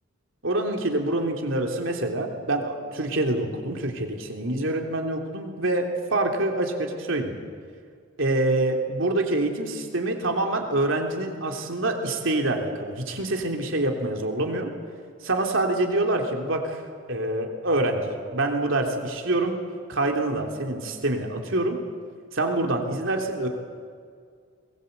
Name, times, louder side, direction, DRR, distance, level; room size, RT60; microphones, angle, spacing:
voice 1, 0.4-7.3 8.2-14.7 15.2-16.8 17.1-19.6 19.9-21.8 22.3-23.5, right 2 dB, 70° right, 3 dB, 3.2 m, -26 dB
22.5 x 21.0 x 8.2 m, 2.2 s
head